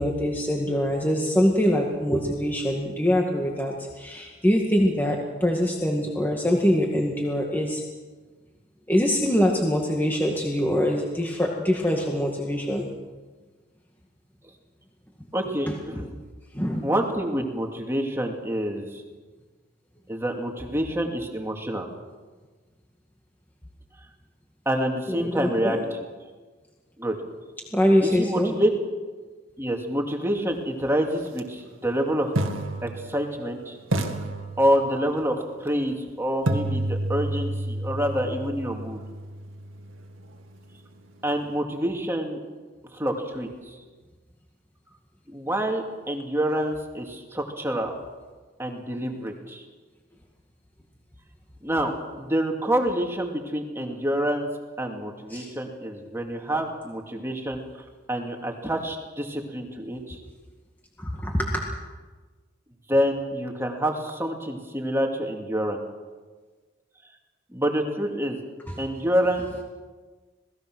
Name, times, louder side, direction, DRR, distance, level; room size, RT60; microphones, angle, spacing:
voice 1, 0.0-7.8 8.9-12.9 16.5-16.8 25.1-25.8 27.7-28.5 55.3-56.2 61.0-61.6 68.7-68.8, equal, 10° left, -1 dB, 2.0 m, -24 dB
voice 2, 15.3-16.1 16.8-19.0 20.1-21.9 24.7-25.8 27.0-27.2 28.0-28.7 29.6-32.3 32.8-33.8 34.6-39.0 41.2-42.4 42.9-43.8 45.3-47.9 48.6-49.6 51.6-54.5 54.8-57.6 58.1-60.2 62.9-65.8 67.5-68.4 68.8-69.5, equal, 10° right, 2 dB, 2.4 m, -27 dB
sound 1, 31.3-31.4 32.4-33.5 33.9-35.2 36.5-40.4, right 1 dB, 75° right, 2.2 m, -30 dB
27.5 x 19.5 x 6.3 m, 1.4 s
head